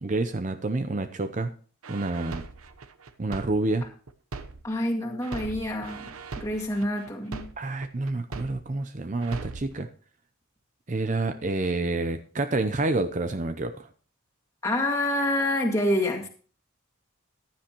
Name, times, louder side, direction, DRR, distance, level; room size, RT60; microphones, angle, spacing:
voice 1, 0.0-1.5 1.9-2.4 3.2-3.9 7.6-9.9 10.9-13.9, right 2 dB, 35° right, 9 dB, 0.6 m, -28 dB
sound 1, 1.8-4.8 5.2-8.8 9.2-9.8, right 3 dB, 85° right, 1.0 m, -39 dB
voice 2, 4.6-7.5 14.6-16.3, left 1 dB, 15° left, -1 dB, 2.1 m, -27 dB
15.5 x 10.5 x 3.0 m, 0.40 s
head